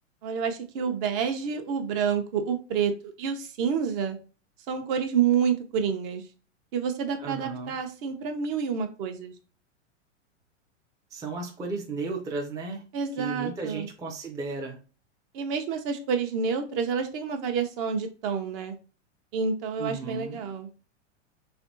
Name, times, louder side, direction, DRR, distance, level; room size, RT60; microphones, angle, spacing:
voice 1, 0.2-4.2 4.7-6.3 6.7-9.3 12.9-13.9 15.3-18.7 19.3-20.7, right 6 dB, 45° right, 6 dB, 0.7 m, -28 dB
voice 2, 7.2-7.7 11.1-12.8 13.2-14.8 19.8-20.4, right 3 dB, 10° right, 1 dB, 0.5 m, -34 dB
3.4 x 2.7 x 2.6 m, 0.35 s
hypercardioid pair, 120°, 37 cm